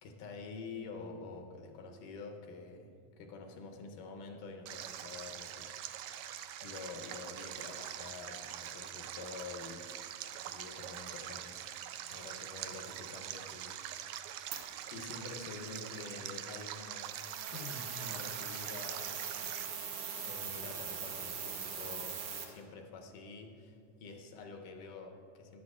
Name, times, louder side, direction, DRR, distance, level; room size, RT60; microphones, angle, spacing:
voice 1, 0.0-6.3 6.6-9.9 10.4-11.7 12.1-14.2 14.9-17.2 17.5-19.3 20.1-25.6, left 4 dB, 85° left, 3 dB, 2.5 m, -48 dB
Stream, 4.7-19.7, right 11 dB, 80° right, 1.7 m, -44 dB
sound 1, 14.5-14.6 17.1-22.5, right 6 dB, 65° right, 2.0 m, -41 dB
16.5 x 11.5 x 2.4 m, 2.4 s
omnidirectional pair, 3.7 m